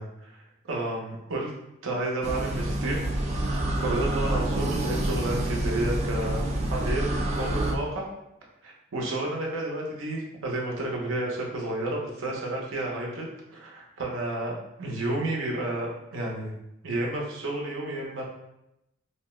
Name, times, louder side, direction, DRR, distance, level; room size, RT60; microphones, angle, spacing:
voice 1, 0.0-1.5 1.8-3.0 3.8-8.1 8.6-16.5 16.8-18.2, right 2 dB, 85° right, -2 dB, 0.7 m, -31 dB
sound 1, 2.2-7.7, right 1 dB, 35° right, 0.3 m, -27 dB
2.7 x 2.1 x 3.0 m, 0.87 s
head